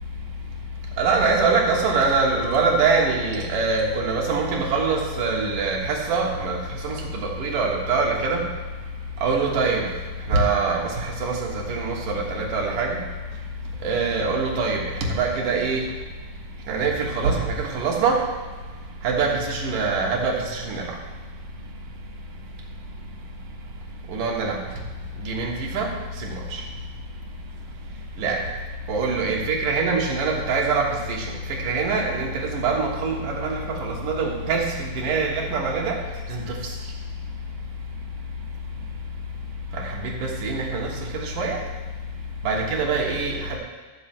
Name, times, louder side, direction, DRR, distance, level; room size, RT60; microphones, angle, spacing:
voice 1, 1.0-8.5 9.2-9.9 10.3-13.0 13.8-15.8 16.7-18.2 19.0-20.9 24.1-24.6 25.2-26.6 28.2-28.4 28.9-36.0 36.3-36.7 39.7-41.6 42.4-43.6, right 4 dB, 85° right, -2 dB, 3.1 m, -24 dB
13.0 x 4.4 x 7.5 m, 1.4 s
omnidirectional pair, 3.6 m